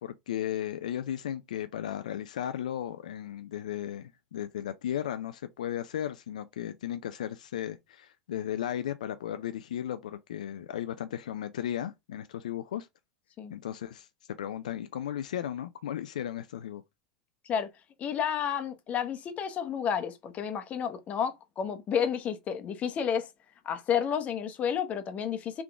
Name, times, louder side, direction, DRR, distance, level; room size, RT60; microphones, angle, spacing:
voice 1, 0.0-12.9 13.5-14.1 14.4-16.8, left 10 dB, 80° left, 0.4 m, -35 dB
voice 2, 18.0-23.3 23.6-25.6, left 8 dB, 35° left, 0.9 m, -31 dB
3.7 x 3.5 x 3.5 m
hypercardioid pair, 95°, 4 cm